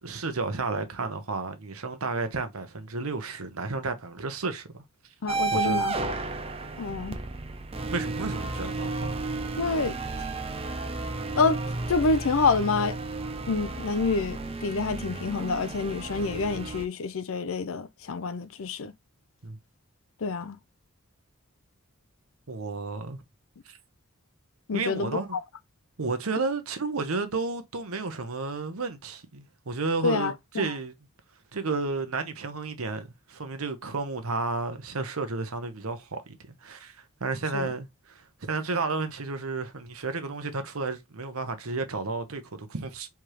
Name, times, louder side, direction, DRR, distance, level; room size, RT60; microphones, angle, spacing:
voice 1, 0.0-4.8 5.5-5.9 7.9-9.1 19.4-19.6 22.5-23.2 23.6-23.8 24.7-25.3 26.0-30.9 31.5-43.1, right 3 dB, 85° right, 1.0 m, -32 dB
voice 2, 5.2-6.1 6.8-7.2 9.6-10.3 11.3-11.6 11.9-13.0 13.5-18.9 20.2-20.6 24.7-25.4 30.0-30.7 37.5-37.7, left 4 dB, 70° left, 0.5 m, -27 dB
sound 1, 5.3-16.9, right 3 dB, 30° right, 0.6 m, -33 dB
4.8 x 3.5 x 3.0 m
head